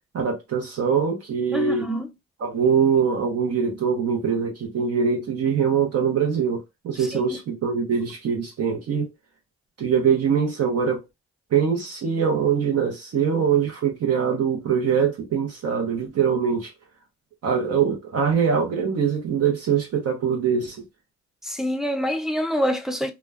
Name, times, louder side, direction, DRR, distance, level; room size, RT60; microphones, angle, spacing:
voice 1, 0.1-1.9 2.4-9.1 9.8-11.0 11.5-16.7 17.4-20.8, right 7 dB, 55° right, 0.7 m, -23 dB
voice 2, 1.5-2.1 7.0-7.4 21.4-23.1, equal, ahead, 0.4 m, -26 dB
2.2 x 2.1 x 3.4 m
cardioid pair, 90°, 30 cm